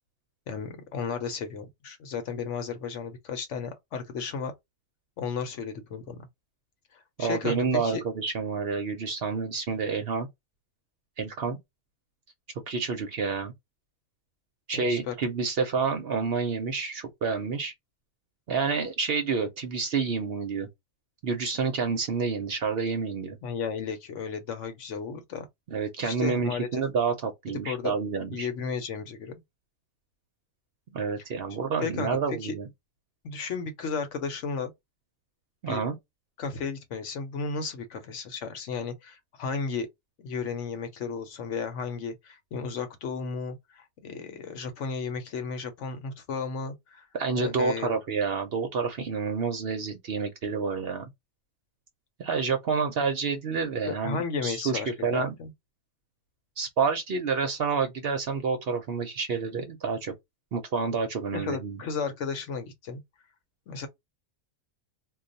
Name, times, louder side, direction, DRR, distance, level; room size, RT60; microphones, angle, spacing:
voice 1, 0.5-4.5 5.2-6.2 6.9-8.0 14.7-15.1 23.4-25.5 26.0-26.8 27.6-27.9 28.3-29.3 31.8-32.6 33.2-34.7 35.7-35.8 36.4-39.9 40.2-47.1 47.3-48.0 53.9-55.5 61.3-63.0 63.7-63.9, left 5 dB, 65° left, 1.0 m, -34 dB
voice 2, 7.2-10.3 11.2-11.6 12.7-13.5 14.7-17.7 18.5-20.7 21.2-23.4 25.7-28.5 30.9-32.7 35.6-36.0 47.1-51.1 52.2-55.4 56.6-60.1 60.5-61.8, right 5 dB, 55° right, 0.7 m, -29 dB
2.3 x 2.3 x 3.8 m
omnidirectional pair, 1.4 m